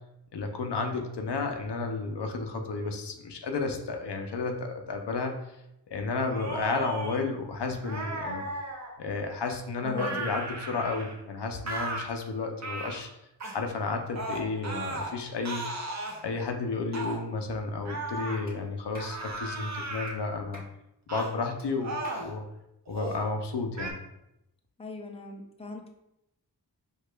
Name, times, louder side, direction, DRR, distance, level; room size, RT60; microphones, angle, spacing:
voice 1, 0.3-5.4 5.9-8.4 9.0-13.1 13.5-15.6 16.2-20.6 21.1-22.4 22.9-24.0, left 3 dB, 80° left, 4 dB, 0.5 m, -32 dB
sound 1, 6.3-7.2 7.8-8.9 10.0-11.2 11.7-12.1 12.6-13.0 13.4-13.6 14.2-15.1 15.5-16.2 16.9-17.2 17.9-18.4 19.0-20.2 21.1-21.3 21.8-22.3 22.9-23.2 23.8-23.9, right 2 dB, 40° right, 0.6 m, -35 dB
voice 2, 9.8-10.2 24.8-25.9, left 2 dB, 15° left, 2 dB, 0.4 m, -40 dB
Clapping, 18.5-18.6 18.9-19.2 20.1-20.2 20.5-20.7 21.6-21.7 22.0-22.3, equal, 20° right, 1.2 m, -49 dB
4.8 x 2.4 x 2.2 m, 0.85 s
wide cardioid pair, 45°, 41 cm